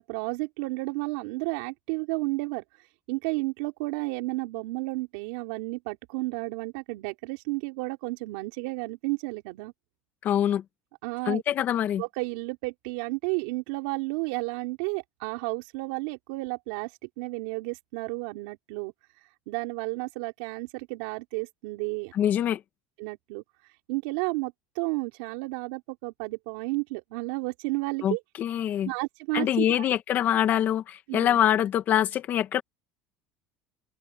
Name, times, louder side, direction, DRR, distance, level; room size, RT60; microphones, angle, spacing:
voice 1, 0.0-9.7 11.0-11.4 12.0-22.1 23.0-28.2 28.8-29.8 31.1-31.4, right 25 dB, 85° right, 3.7 m, -32 dB
voice 2, 10.2-10.6 11.3-12.0 22.1-22.6 28.0-28.9 29.3-32.6, left 11 dB, 40° left, 2.1 m, -24 dB
open air
cardioid pair, 135°, 4 cm